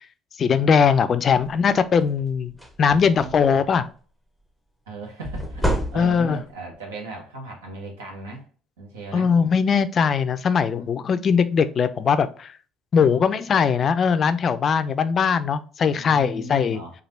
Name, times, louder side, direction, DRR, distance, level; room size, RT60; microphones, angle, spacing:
voice 1, 0.4-3.8 6.0-6.4 9.1-12.5 12.9-16.8, left 6 dB, 45° left, 0.3 m, -20 dB
sound 1, 1.3-1.6 2.0-2.2 2.5-3.6 5.2-6.5, equal, 10° right, 0.7 m, -28 dB
voice 2, 2.9-3.8 4.9-8.5 8.8-9.3 10.7-10.9 13.0-13.2 15.9-16.9, right 2 dB, 85° right, 0.8 m, -38 dB
3.2 x 2.4 x 2.4 m
hypercardioid pair, 60°, 0 cm